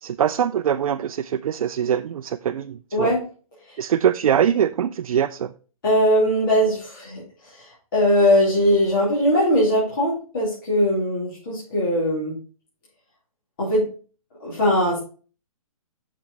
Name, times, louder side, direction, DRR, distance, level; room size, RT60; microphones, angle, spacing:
voice 1, 0.0-3.1 3.8-5.5, right 9 dB, 70° right, 0.4 m, -23 dB
voice 2, 2.9-3.2 5.8-7.2 7.9-12.3 13.6-13.8 14.4-15.0, equal, 35° left, 2.5 m, -20 dB
6.1 x 6.0 x 3.9 m
hypercardioid pair, 175°, 19 cm